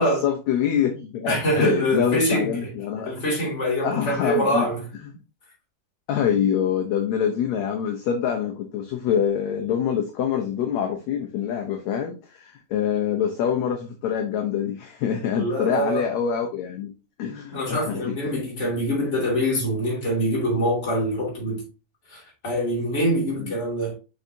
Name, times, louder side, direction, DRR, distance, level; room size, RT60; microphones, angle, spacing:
voice 1, 0.0-3.1 3.8-4.7 6.1-16.9 17.2-18.2 23.4-23.5, left 8 dB, 75° left, 1.7 m, -25 dB
voice 2, 1.3-2.7 3.0-4.8 15.3-16.1 17.5-21.6 22.1-23.9, equal, 25° left, 2.2 m, -24 dB
6.4 x 5.5 x 2.7 m
omnidirectional pair, 3.8 m